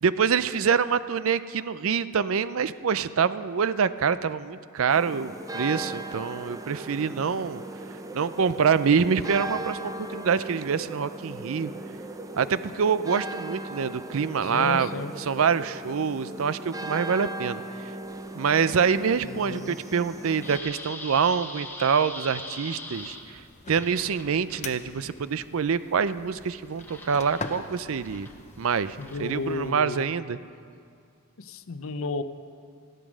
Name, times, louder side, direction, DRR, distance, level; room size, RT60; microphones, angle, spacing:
voice 1, 0.0-7.6 8.1-11.7 12.4-14.9 15.2-17.9 18.4-23.4 23.7-28.3 28.6-30.4, right 6 dB, 70° right, 0.5 m, -26 dB
sound 1, 4.9-20.6, right 1 dB, 15° right, 0.5 m, -38 dB
voice 2, 14.4-15.1 19.3-19.8 29.0-30.1 31.4-32.2, left 3 dB, 70° left, 0.6 m, -33 dB
sound 2, 18.0-30.0, left 2 dB, 10° left, 1.2 m, -44 dB
sound 3, 22.9-29.7, left 3 dB, 30° left, 0.7 m, -43 dB
14.5 x 12.0 x 6.2 m
head